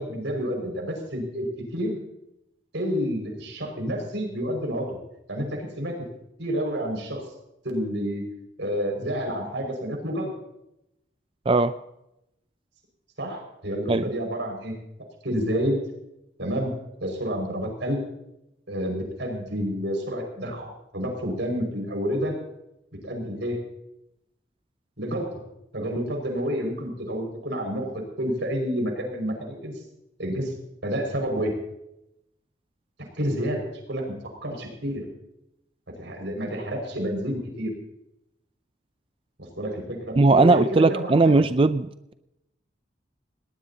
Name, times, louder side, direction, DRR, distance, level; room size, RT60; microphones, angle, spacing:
voice 1, 0.0-2.0 2.7-5.0 5.3-6.0 6.4-7.2 7.6-8.2 8.6-10.3 13.2-14.7 15.2-15.8 16.4-16.7 17.0-18.0 18.7-22.4 23.0-23.6 25.0-25.4 25.7-29.7 30.2-30.5 30.8-31.5 33.0-35.0 36.0-37.7 39.4-41.4, equal, 75° right, 1 dB, 5.8 m, -29 dB
voice 2, 40.2-42.1, right 3 dB, 30° right, 11 dB, 0.4 m, -19 dB
20.0 x 19.0 x 2.9 m, 0.84 s
head